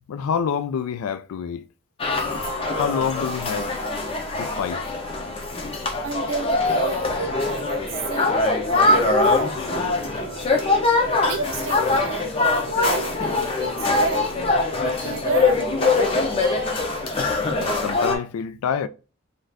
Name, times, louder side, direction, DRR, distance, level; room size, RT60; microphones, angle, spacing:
voice 1, 0.1-1.6 2.8-3.7 4.4-4.8 17.6-18.9, left 7 dB, 85° left, 0.3 m, -27 dB
sound 1, 2.0-18.2, left 3 dB, 25° left, 0.5 m, -23 dB
voice 2, 6.0-8.4 8.7-10.5 11.2-12.3 12.7-14.3 14.8-16.4, right 4 dB, 70° right, 0.7 m, -31 dB
2.6 x 2.4 x 3.2 m
head